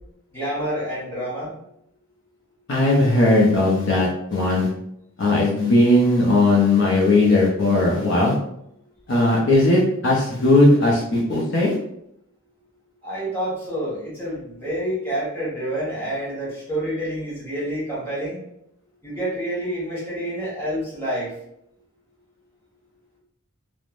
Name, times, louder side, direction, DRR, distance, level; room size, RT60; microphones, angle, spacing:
voice 1, 0.3-1.5 13.0-18.4 19.0-21.3, right 1 dB, 10° left, -9 dB, 1.4 m, -28 dB
voice 2, 2.7-4.7 5.2-8.3 9.1-11.8, left 2 dB, 65° left, -3 dB, 0.6 m, -18 dB
3.3 x 2.1 x 2.5 m, 0.74 s
head